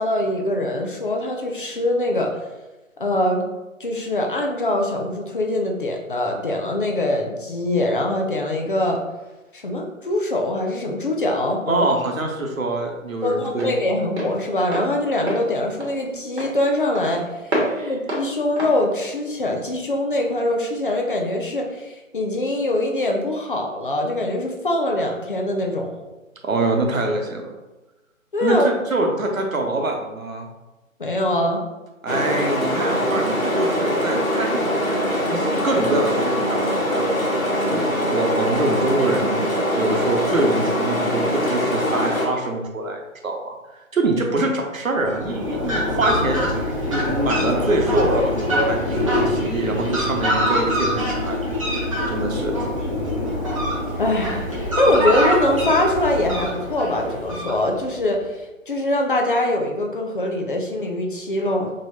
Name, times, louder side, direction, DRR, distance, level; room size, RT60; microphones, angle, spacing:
voice 1, 0.0-2.3 3.0-3.5 3.8-9.0 9.5-11.9 13.2-26.0 28.3-28.7 31.0-31.6 54.0-61.7, left 1 dB, 40° left, 1 dB, 0.6 m, -23 dB
Walk footsteps, 11.3-20.0, right 1 dB, 50° right, 1.3 m, -31 dB
voice 2, 11.7-13.8 17.6-18.0 26.4-27.6 28.4-30.5 32.0-39.5 39.7-43.6 43.9-52.6, right 2 dB, 75° right, 2 dB, 0.9 m, -25 dB
sound 1, 32.1-42.3, equal, 75° left, 1.3 m, -22 dB
Fowl, 45.0-58.0, equal, 25° right, 0.8 m, -24 dB
4.3 x 3.1 x 2.7 m, 1.1 s
figure-of-eight pair, 150°, 41 cm